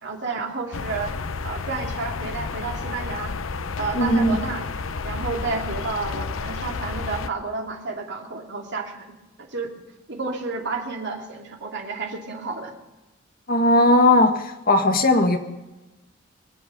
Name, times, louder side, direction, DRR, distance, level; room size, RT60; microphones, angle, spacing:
voice 1, 0.0-1.1 1.4-3.3 3.8-4.7 5.0-9.1 9.4-9.7 10.1-12.7, right 4 dB, 60° right, 1 dB, 2.8 m, -31 dB
sound 1, 0.7-7.3, left 4 dB, 75° left, 0.7 m, -31 dB
voice 2, 4.0-4.4 13.5-14.3 14.7-15.4, left 1 dB, 45° left, 5 dB, 1.8 m, -17 dB
23.5 x 8.1 x 6.8 m, 1.1 s
head